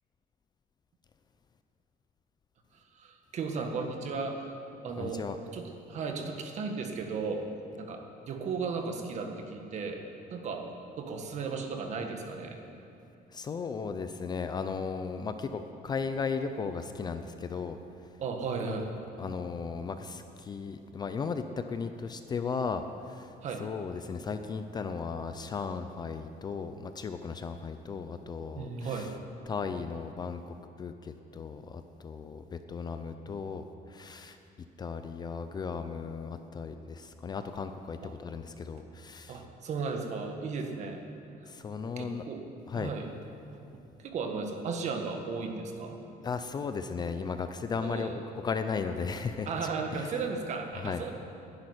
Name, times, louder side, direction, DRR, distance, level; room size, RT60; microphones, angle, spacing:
voice 1, 2.9-4.5 4.8-5.2 5.5-7.4 7.8-10.0 10.3-10.6 11.0-12.6 18.2-18.9 23.4-23.6 28.5-29.1 38.0-38.1 39.3-41.0 42.0-42.4 42.7-43.1 44.0-46.0 47.8-48.2 49.4-51.1, right 4 dB, 45° right, 4 dB, 1.7 m, -35 dB
voice 2, 5.0-5.4 13.3-17.8 19.2-22.8 23.1-23.3 23.6-29.1 29.5-33.6 33.9-34.4 34.8-39.4 41.5-42.2 42.7-42.9 46.2-49.5 49.9-50.1 50.8-51.0, left 5 dB, 25° left, 8 dB, 0.5 m, -36 dB
12.0 x 10.5 x 9.9 m, 2.7 s
cardioid pair, 180°, 16 cm